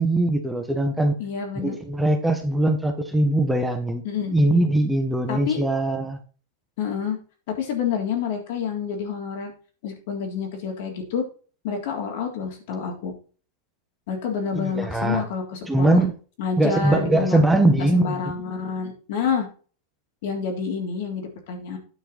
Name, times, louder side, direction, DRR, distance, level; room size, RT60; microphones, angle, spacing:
voice 1, 0.0-1.1 1.6-4.0 4.3-6.2 14.5-15.2 15.7-16.1 16.6-18.2, right 1 dB, 5° right, 1.4 m, -21 dB
voice 2, 1.2-1.8 4.0-4.3 5.3-5.6 6.8-7.2 7.5-9.5 9.8-11.2 11.6-13.1 14.1-16.0 16.4-17.4 17.8-19.5 20.2-21.8, left 6 dB, 65° left, 3.6 m, -28 dB
9.5 x 5.6 x 4.3 m
hypercardioid pair, 120°, 0 cm